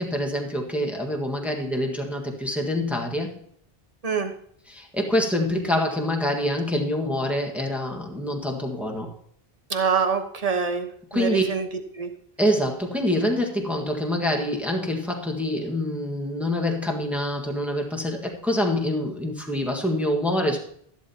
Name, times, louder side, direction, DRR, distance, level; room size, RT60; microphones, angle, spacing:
voice 1, 0.0-3.3 4.7-9.1 11.1-11.4 12.4-20.6, left 1 dB, ahead, 1 dB, 1.6 m, -26 dB
voice 2, 4.0-4.3 9.7-11.7 11.9-12.1, right 5 dB, 40° right, 6 dB, 1.2 m, -25 dB
13.5 x 11.5 x 2.9 m, 0.63 s
omnidirectional pair, 1.0 m